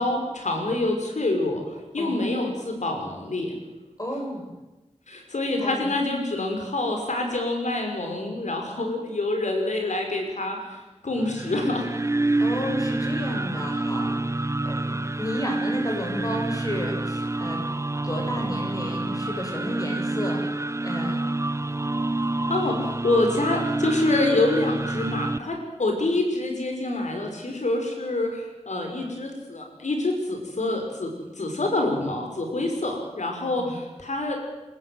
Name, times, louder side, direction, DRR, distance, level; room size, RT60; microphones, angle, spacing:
voice 1, 0.0-3.5 5.1-11.9 22.5-34.4, left 2 dB, 90° left, 3 dB, 5.5 m, -26 dB
voice 2, 4.0-4.5 5.6-5.9 12.4-17.6 18.0-21.3 33.6-33.8, equal, 30° left, 1 dB, 7.6 m, -32 dB
sound 1, 11.1-25.4, right 2 dB, 25° right, 0.7 m, -28 dB
27.0 x 14.5 x 9.5 m, 1.0 s
wide cardioid pair, 65°, 12 cm